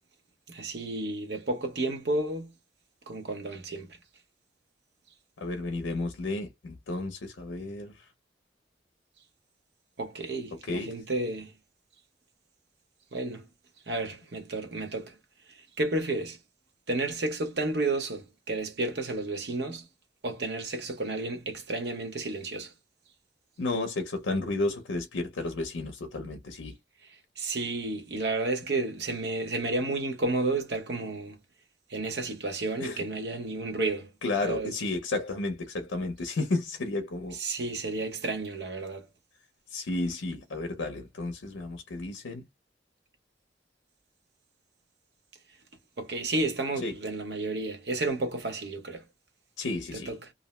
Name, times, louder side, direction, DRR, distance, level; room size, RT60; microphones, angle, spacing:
voice 1, 0.5-2.5 3.1-4.0 10.0-11.5 13.1-13.5 13.9-15.2 15.5-16.4 16.9-19.9 20.2-22.7 27.4-31.4 31.9-34.1 34.4-34.7 37.3-39.1 46.0-49.0 49.9-50.3, right 2 dB, 65° right, 0.8 m, -31 dB
voice 2, 5.4-8.1 10.7-10.9 23.6-26.7 32.8-33.0 34.2-37.4 39.7-42.4 46.8-46.9 49.6-50.1, left 2 dB, 90° left, 0.5 m, -32 dB
2.5 x 2.0 x 3.0 m
head